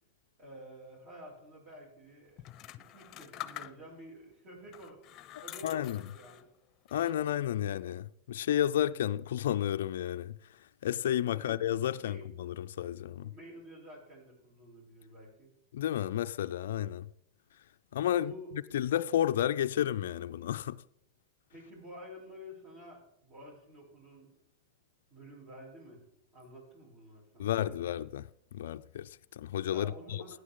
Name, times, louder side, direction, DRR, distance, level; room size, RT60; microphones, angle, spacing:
voice 1, 0.4-2.5 2.8-5.0 5.4-6.5 11.3-11.6 11.9-12.2 13.2-15.5 18.1-18.5 21.5-24.3 25.1-26.0 26.3-27.8 29.7-30.4, equal, 40° right, 6.5 m, -50 dB
sound 1, 2.4-4.1 4.7-6.5 6.9-7.5, left 13 dB, 35° left, 0.7 m, -47 dB
voice 2, 5.3-6.0 6.9-10.4 10.8-13.3 15.7-17.1 17.9-18.3 18.7-20.8 27.4-30.4, left 11 dB, 65° left, 0.4 m, -32 dB
17.5 x 9.9 x 3.8 m
hypercardioid pair, 100°, 0 cm